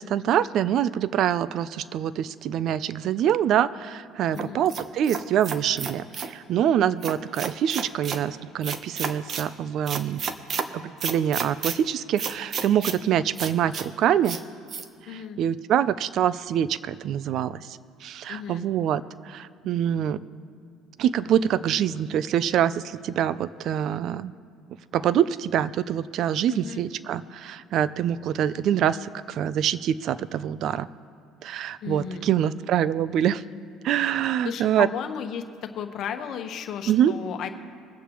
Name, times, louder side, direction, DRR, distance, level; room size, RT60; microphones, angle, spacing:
voice 1, 0.0-10.2 10.7-14.4 15.1-20.2 21.0-24.3 24.9-30.9 31.4-33.4 33.8-34.9 36.9-37.1, right 10 dB, 60° right, 17 dB, 0.4 m, -25 dB
voice 2, 4.3-4.7 15.1-15.4 18.3-18.7 26.5-26.8 31.8-32.6 34.4-37.5, left 8 dB, 60° left, 6 dB, 1.2 m, -34 dB
sound 1, 4.4-6.3 7.0-8.2 8.6-9.5 9.9-10.7 11.0-11.8 12.2-13.0 13.4-13.9 14.2-14.4 14.7-14.8, right 6 dB, 45° right, 0.8 m, -31 dB
23.5 x 8.3 x 3.1 m, 2.5 s
supercardioid pair, 100°, 0 cm